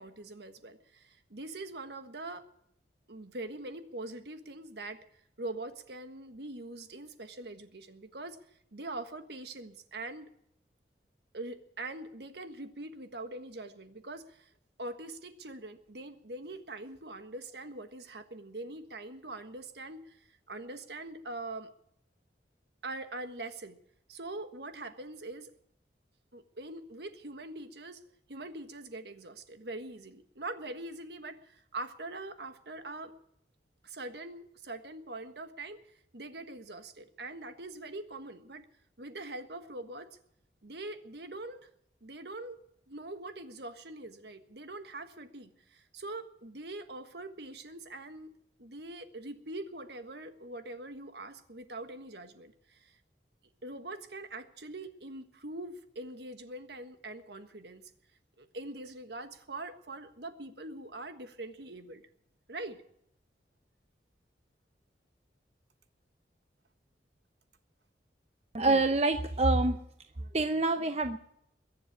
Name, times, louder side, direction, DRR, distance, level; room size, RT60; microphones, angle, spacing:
voice 1, 0.0-2.4 3.1-5.0 5.4-8.4 8.7-10.3 11.3-14.5 14.8-21.7 22.8-23.8 24.1-25.5 26.3-28.0 28.3-33.1 33.8-35.8 36.1-38.6 39.0-40.1 40.6-41.7 42.0-42.6 42.9-48.3 48.6-53.0 53.6-57.9 58.4-62.0 62.5-62.8, right 2 dB, 70° right, 1.5 m, -43 dB
voice 2, 68.5-69.8 70.3-71.2, right 2 dB, 35° right, 0.7 m, -26 dB
22.0 x 7.6 x 8.5 m
head